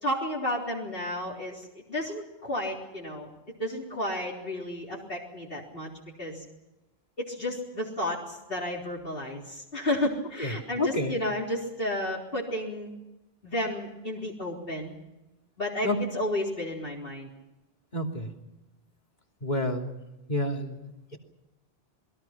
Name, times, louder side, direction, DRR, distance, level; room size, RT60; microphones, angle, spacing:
voice 1, 0.0-3.3 3.6-5.9 6.2-6.4 7.2-12.9 13.4-15.0 15.6-17.3, left 1 dB, 65° left, -4 dB, 4.0 m, -32 dB
voice 2, 10.8-11.1 15.8-15.9 17.9-18.3 19.4-19.9 20.3-21.2, left 1 dB, 45° left, 2 dB, 3.2 m, -29 dB
28.0 x 21.5 x 5.9 m, 0.98 s
omnidirectional pair, 1.0 m